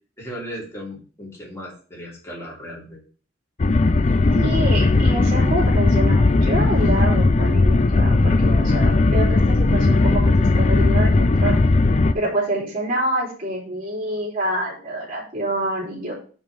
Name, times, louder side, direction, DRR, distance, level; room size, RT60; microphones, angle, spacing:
voice 1, 0.2-3.0, equal, 15° left, -4 dB, 3.0 m, -36 dB
sound 1, 3.6-12.1, left 3 dB, 35° left, 0.5 m, -17 dB
voice 2, 4.3-11.6 12.1-16.1, right 1 dB, 45° right, -5 dB, 3.6 m, -27 dB
5.3 x 5.2 x 6.0 m, 0.41 s
head